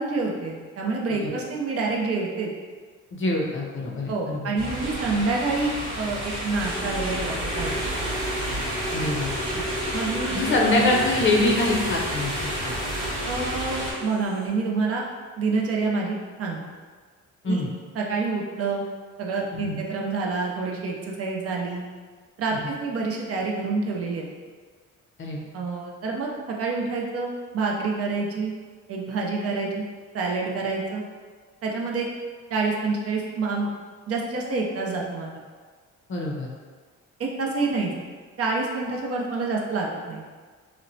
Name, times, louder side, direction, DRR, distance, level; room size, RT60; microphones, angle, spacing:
voice 1, 0.0-2.5 4.1-7.9 9.5-9.6 9.9-10.7 13.3-15.0 15.4-16.6 17.5-17.6 17.9-18.8 19.2-21.8 22.4-24.3 25.5-28.5 28.9-29.8 30.1-31.0 31.6-32.1 32.5-33.7 34.1-35.3 37.2-38.0 38.4-40.2, right 3 dB, 50° right, -1 dB, 0.5 m, -27 dB
voice 2, 3.1-4.4 8.9-9.3 10.3-12.3 12.6-12.7 17.4-17.7 19.5-19.8 25.2-25.4 36.1-36.5, left 2 dB, 40° left, -1 dB, 0.6 m, -24 dB
sound 1, 4.6-13.9, right 1 dB, 90° right, 1.0 m, -30 dB
sound 2, 6.6-14.5, left 1 dB, 15° right, 0.9 m, -35 dB
2.9 x 2.1 x 2.6 m, 1.5 s
cardioid pair, 90°, 30 cm